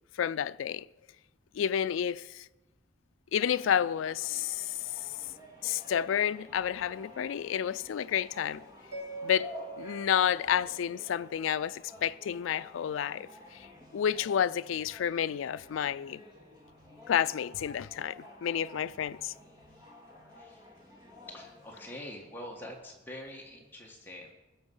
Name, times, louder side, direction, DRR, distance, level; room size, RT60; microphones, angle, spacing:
voice 1, 0.2-0.9 1.5-2.5 3.3-4.9 5.6-8.6 9.2-13.7 13.9-16.2 17.1-19.3, left 9 dB, 85° left, 0.3 m, -30 dB
sound 1, 3.4-22.0, left 2 dB, 20° right, 2.1 m, -51 dB
Mallet percussion, 8.9-11.9, right 4 dB, 65° right, 2.7 m, -45 dB
voice 2, 21.3-24.3, left 1 dB, 10° left, 1.6 m, -45 dB
20.0 x 7.0 x 5.5 m
head